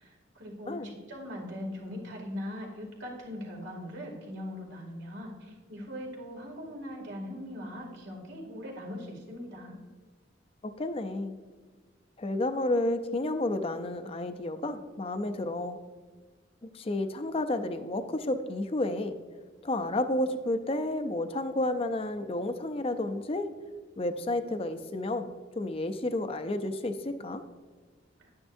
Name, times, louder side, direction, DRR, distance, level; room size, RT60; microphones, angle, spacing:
voice 1, 0.0-9.8, left 1 dB, 65° right, -1 dB, 2.3 m, -40 dB
voice 2, 10.6-11.4 12.2-15.8 16.6-19.2 19.6-23.5 24.0-27.4, left 1 dB, 30° left, 9 dB, 0.5 m, -31 dB
10.5 x 9.7 x 2.6 m, 1.4 s
head